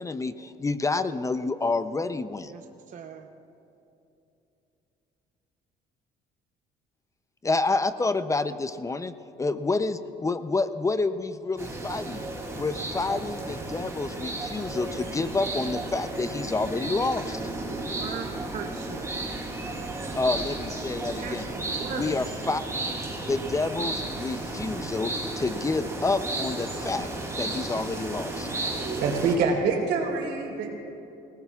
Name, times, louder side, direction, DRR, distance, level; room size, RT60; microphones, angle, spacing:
voice 1, 0.0-2.5 7.4-12.2 12.5-17.4 20.1-21.5 21.9-22.6 23.3-27.1 27.4-28.5, left 3 dB, 20° left, 11 dB, 0.5 m, -28 dB
voice 2, 2.9-3.3 17.7-18.3 18.5-19.2 21.2-22.4, right 7 dB, 50° right, 5 dB, 0.8 m, -38 dB
sound 1, 11.6-29.4, right 2 dB, 15° right, 2.8 m, -33 dB
voice 3, 28.8-30.7, right 4 dB, 85° right, 0 dB, 3.3 m, -26 dB
26.0 x 18.5 x 2.4 m, 2.8 s
cardioid pair, 110°, 17 cm